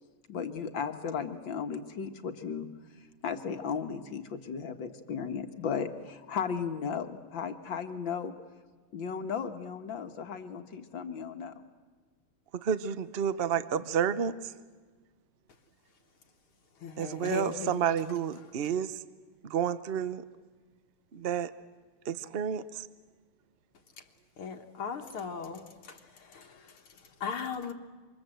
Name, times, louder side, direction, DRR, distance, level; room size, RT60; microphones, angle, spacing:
voice 1, 0.3-2.7 3.2-8.3 8.9-11.5, left 6 dB, 60° left, 7 dB, 2.0 m, -35 dB
voice 2, 12.6-14.5 17.0-19.0 19.4-20.2 21.1-21.5 22.0-22.9, right 8 dB, 85° right, 13 dB, 0.5 m, -30 dB
voice 3, 16.8-17.8 24.4-27.7, left 6 dB, 80° left, 3 dB, 2.3 m, -38 dB
27.5 x 25.5 x 7.8 m, 1.4 s
omnidirectional pair, 2.4 m